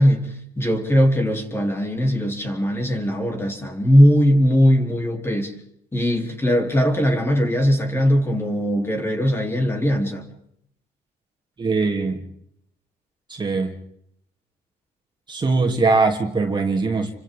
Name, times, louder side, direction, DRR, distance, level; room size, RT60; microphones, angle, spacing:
voice 1, 0.0-5.5 5.9-10.3, equal, 15° left, 2 dB, 3.6 m, -20 dB
voice 2, 11.6-12.2 13.3-13.8 15.3-17.2, right 3 dB, 25° right, 2 dB, 3.1 m, -21 dB
29.5 x 25.5 x 3.8 m, 0.73 s
cardioid pair, 110°, 17 cm